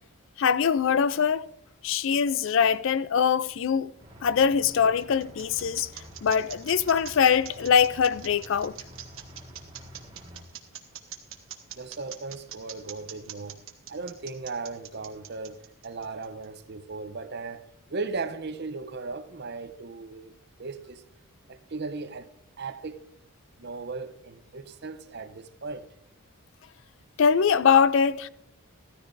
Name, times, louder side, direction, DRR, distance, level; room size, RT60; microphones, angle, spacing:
voice 1, 0.4-1.5 1.8-3.9 4.2-5.9 6.2-8.7 27.2-28.3, left 6 dB, 60° left, 0.4 m, -22 dB
sound 1, 4.0-10.4, equal, 25° right, 1.7 m, -48 dB
sound 2, 4.6-16.4, right 11 dB, 65° right, 1.2 m, -43 dB
voice 2, 11.7-13.6 13.9-15.6 15.8-20.3 20.6-21.0 21.5-22.3 22.6-23.0 23.6-25.9, right 4 dB, 50° right, 0.7 m, -37 dB
15.5 x 13.5 x 2.6 m
head